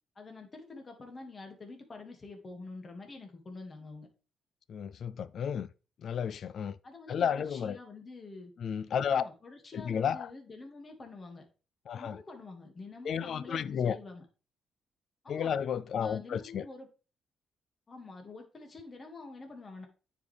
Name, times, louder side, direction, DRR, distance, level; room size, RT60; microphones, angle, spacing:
voice 1, 0.2-4.1 6.8-8.5 9.1-11.5 11.9-14.2 15.2-15.6 16.0-16.9 17.9-19.9, left 3 dB, 35° left, 2.1 m, -47 dB
voice 2, 4.7-5.7 6.0-6.8 7.1-7.8 8.6-9.2 9.7-10.3 11.9-12.2 13.0-14.0 15.3-16.6, left 8 dB, 60° left, 0.4 m, -32 dB
9.5 x 5.1 x 3.4 m
cardioid pair, 90°, 0 cm